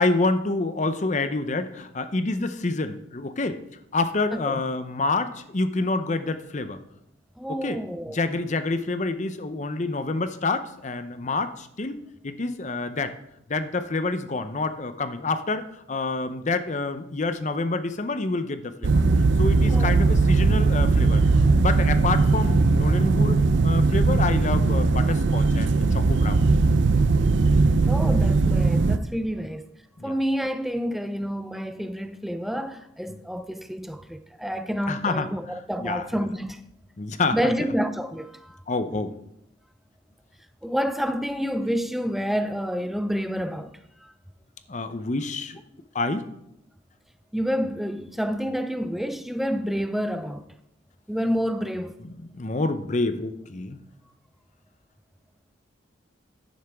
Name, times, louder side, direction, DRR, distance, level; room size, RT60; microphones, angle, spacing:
voice 1, 0.0-3.6 3.9-6.8 7.5-7.8 8.1-12.0 12.2-13.1 13.5-19.0 19.4-21.2 21.6-23.4 23.6-26.5 29.4-29.5 30.0-30.1 33.1-33.2 34.9-35.3 35.8-36.1 37.0-37.5 38.7-39.2 44.7-45.6 45.9-46.3 52.0-53.8, left 3 dB, 35° left, 0.6 m, -27 dB
voice 2, 7.4-8.4 19.7-19.9 27.9-29.7 30.0-36.6 37.3-38.6 40.6-43.7 44.0-44.1 47.3-50.5 51.1-52.0, equal, ahead, 0.4 m, -28 dB
sound 1, 18.8-29.0, right 3 dB, 60° right, 0.5 m, -19 dB
10.5 x 9.8 x 3.5 m
head